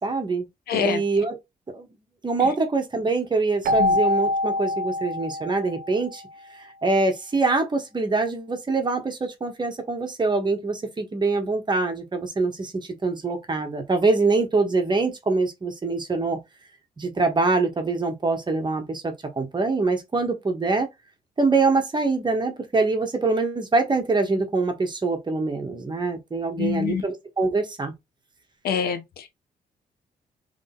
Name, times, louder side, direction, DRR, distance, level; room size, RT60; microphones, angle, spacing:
voice 1, 0.0-0.4 0.7-1.4 1.7-1.9 2.2-6.2 6.6-16.4 17.0-20.9 21.4-27.9, right 3 dB, 30° right, 1.5 m, -24 dB
voice 2, 0.7-1.0 2.4-2.5 3.8-4.0 26.6-27.0 28.6-29.3, left 7 dB, 85° left, 1.0 m, -26 dB
Keyboard (musical), 3.6-6.3, left 1 dB, 65° right, 0.7 m, -25 dB
3.7 x 3.5 x 3.9 m
cardioid pair, 100°, 16 cm